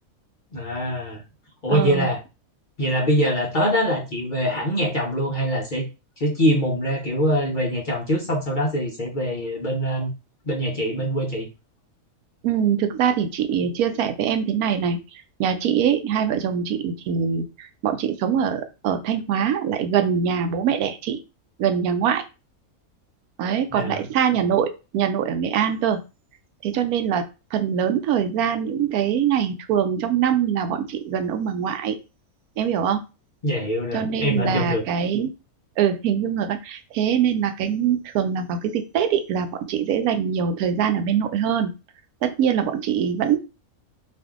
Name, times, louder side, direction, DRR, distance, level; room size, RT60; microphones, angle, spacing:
voice 1, 0.5-1.2 1.6-2.2 2.8-5.9 6.2-10.1 10.4-11.5 23.7-24.1 33.4-34.8, equal, 45° left, -2 dB, 0.7 m, -23 dB
voice 2, 1.7-2.1 12.4-15.0 15.4-21.2 21.6-22.2 23.4-26.0 26.6-32.0 32.6-33.0 33.9-35.3 35.8-41.7 42.2-43.4, right 8 dB, 90° right, 7 dB, 1.1 m, -23 dB
2.6 x 2.5 x 3.6 m, 0.29 s
omnidirectional pair, 1.5 m